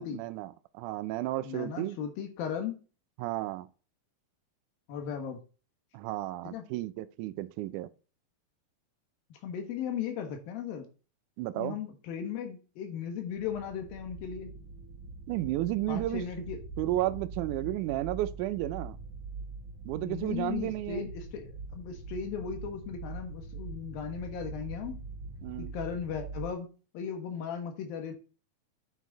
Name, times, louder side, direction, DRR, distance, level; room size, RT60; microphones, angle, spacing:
voice 1, 0.0-2.0 3.2-3.7 5.9-7.9 11.4-11.8 15.3-16.2 16.8-19.0 19.9-21.0 25.4-25.7, right 15 dB, 80° right, 1.8 m, -33 dB
voice 2, 1.4-2.8 4.9-5.4 6.4-6.6 9.3-10.9 11.6-14.5 15.9-16.6 20.0-25.0 25.6-26.7 26.9-28.1, left 7 dB, 90° left, 3.2 m, -37 dB
sound 1, 13.4-26.5, right 3 dB, 60° right, 2.4 m, -43 dB
9.5 x 6.1 x 4.0 m
omnidirectional pair, 4.0 m